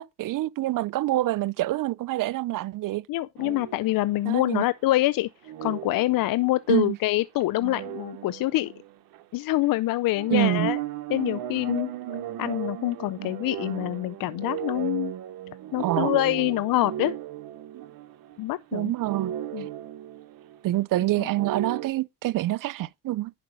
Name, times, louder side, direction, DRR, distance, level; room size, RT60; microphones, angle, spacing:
voice 1, 0.0-3.0 4.3-4.6 6.7-7.0 10.3-10.7 15.8-16.1 17.7-17.8 18.7-19.3 20.6-23.3, right 16 dB, 65° right, 0.5 m, -26 dB
voice 2, 3.1-5.3 5.6-8.7 9.3-10.8 11.1-11.9 12.4-15.1 15.7-17.1 18.4-18.9 19.5-19.7 21.2-21.3, left 17 dB, 70° left, 0.5 m, -25 dB
sound 1, 3.4-4.3 5.4-6.7 7.4-9.2 9.5-9.7 10.1-18.6 18.9-20.6 21.3-21.9, right 12 dB, 80° right, 1.0 m, -35 dB
10.5 x 5.2 x 5.1 m
supercardioid pair, 55°, 35 cm